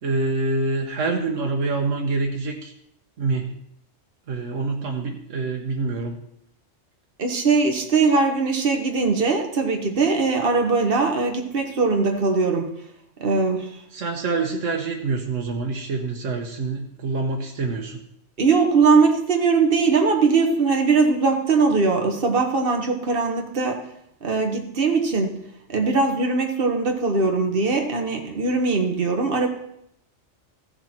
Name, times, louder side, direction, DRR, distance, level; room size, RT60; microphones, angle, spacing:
voice 1, 0.0-2.7 3.2-3.5 4.3-6.2 13.9-18.0, right 3 dB, 85° right, 1 dB, 1.4 m, -26 dB
voice 2, 7.2-12.7 13.2-13.8 18.4-23.8 24.2-25.4 25.7-29.5, right 4 dB, 50° right, 3 dB, 1.5 m, -20 dB
15.0 x 6.8 x 4.4 m, 0.75 s
omnidirectional pair, 1.3 m